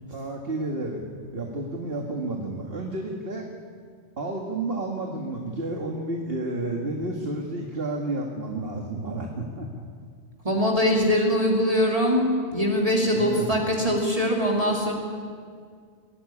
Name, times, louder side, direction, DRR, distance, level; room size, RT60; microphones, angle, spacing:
voice 1, 0.1-1.1 1.3-3.4 4.2-9.9 13.1-13.6, right 2 dB, 60° right, 1 dB, 2.1 m, -31 dB
voice 2, 10.4-14.9, equal, 30° right, -2 dB, 2.7 m, -22 dB
22.0 x 16.0 x 9.9 m, 2.1 s
omnidirectional pair, 1.1 m